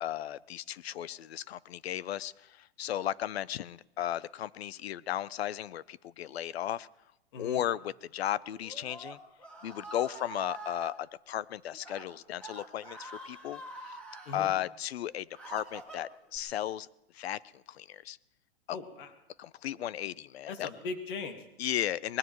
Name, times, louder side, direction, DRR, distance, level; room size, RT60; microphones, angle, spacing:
voice 1, 0.0-6.9 7.4-9.2 9.6-14.0 14.3-16.9 17.1-18.2 19.4-20.7 21.6-22.2, left 11 dB, 75° left, 21 dB, 0.6 m, -35 dB
Screaming, 8.5-10.9 11.7-12.0 12.4-14.4 15.0-16.4, right 3 dB, 5° left, 1.9 m, -46 dB
voice 2, 18.7-19.1 20.5-21.5, left 4 dB, 55° left, 6 dB, 1.8 m, -39 dB
23.5 x 20.0 x 3.1 m, 0.90 s
hypercardioid pair, 160°, 31 cm